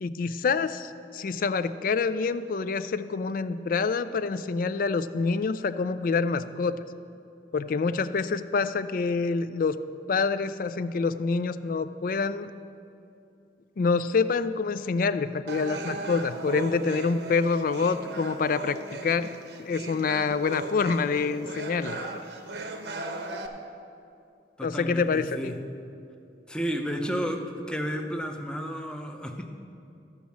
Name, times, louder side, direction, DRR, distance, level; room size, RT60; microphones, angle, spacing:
voice 1, 0.0-6.8 7.5-9.8 10.1-12.5 13.8-19.3 19.6-22.2 24.6-25.6, left 4 dB, 50° left, 13 dB, 0.4 m, -27 dB
sound 1, 15.5-23.5, right 2 dB, 70° right, 0.8 m, -37 dB
voice 2, 24.6-25.6 26.5-29.5, equal, 5° left, 4 dB, 0.6 m, -32 dB
13.5 x 5.1 x 7.0 m, 2.6 s
head